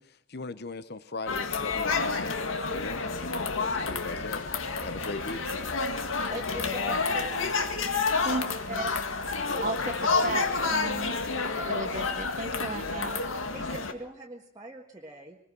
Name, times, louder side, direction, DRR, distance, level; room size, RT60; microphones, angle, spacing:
voice 1, 0.0-2.4 2.7-4.4 4.8-5.5, left 3 dB, 55° left, 14 dB, 1.0 m, -39 dB
sound 1, 1.3-13.9, left 4 dB, 85° left, 2.0 m, -29 dB
voice 2, 6.3-7.6 13.5-15.4, right 1 dB, 20° right, -1 dB, 1.6 m, -41 dB
voice 3, 9.6-13.2, right 2 dB, 40° right, 6 dB, 1.3 m, -35 dB
24.5 x 20.5 x 6.2 m, 0.69 s
head